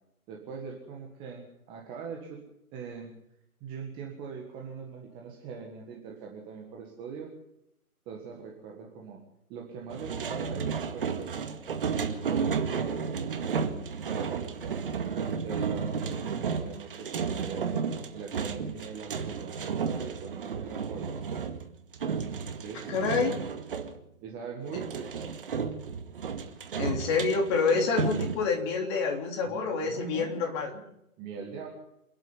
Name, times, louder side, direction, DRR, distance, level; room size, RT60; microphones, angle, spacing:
voice 1, 0.3-2.4 2.7-3.2 3.6-7.3 8.0-9.2 9.5-11.6 11.9-13.7 14.0-14.9 15.4-17.8 18.1-21.2 22.6-23.2 24.2-25.4 27.9-28.4 29.5-30.4 30.7-30.8 31.2-31.7, right 6 dB, 10° right, 0 dB, 1.6 m, -42 dB
sound 1, 9.9-24.0 24.7-28.4, right 6 dB, 35° right, 2.1 m, -33 dB
voice 2, 22.9-23.3 26.8-30.7, left 4 dB, 20° left, 2 dB, 3.3 m, -27 dB
27.5 x 10.5 x 9.6 m, 0.82 s
figure-of-eight pair, 155°, 45 cm